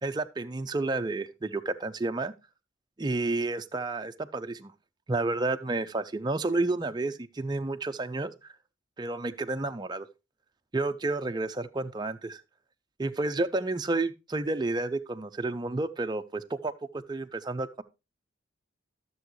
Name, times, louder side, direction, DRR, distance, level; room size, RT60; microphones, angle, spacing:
voice 1, 0.0-2.3 3.0-4.7 5.1-8.5 9.0-10.1 10.7-12.4 13.0-17.8, right 2 dB, 20° right, 0.4 m, -31 dB
13.0 x 7.0 x 3.1 m
head